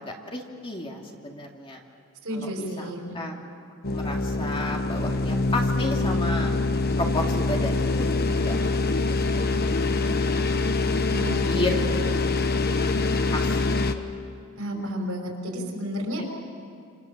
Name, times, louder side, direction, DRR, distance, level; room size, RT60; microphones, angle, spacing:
voice 1, 0.0-1.8 2.3-3.5 3.9-6.5 7.0-8.8 9.1-10.2 11.1-11.8 12.2-13.8 14.7-14.8 16.2-16.3, left 2 dB, 25° left, 0 dB, 2.6 m, -33 dB
voice 2, 2.2-3.3 11.1-11.9 14.6-16.2, equal, 70° right, 1 dB, 5.5 m, -32 dB
sound 1, 3.8-13.9, left 3 dB, 45° left, 1.3 m, -24 dB
28.5 x 28.0 x 7.4 m, 2.4 s
head